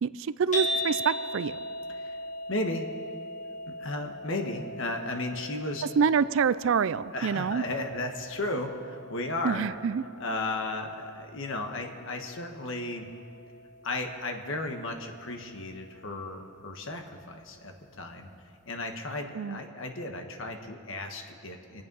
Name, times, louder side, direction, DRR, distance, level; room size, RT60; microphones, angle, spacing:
voice 1, 0.0-1.6 6.0-7.6 9.4-10.0 19.3-19.6, right 6 dB, 60° right, 16 dB, 0.4 m, -26 dB
sound 1, 0.5-16.8, equal, 35° left, 1.9 m, -40 dB
voice 2, 2.5-2.9 3.8-5.8 7.1-9.7 10.2-13.1 13.8-18.3 18.7-21.8, left 2 dB, 60° left, 4 dB, 1.4 m, -34 dB
25.0 x 8.6 x 5.5 m, 2.7 s
head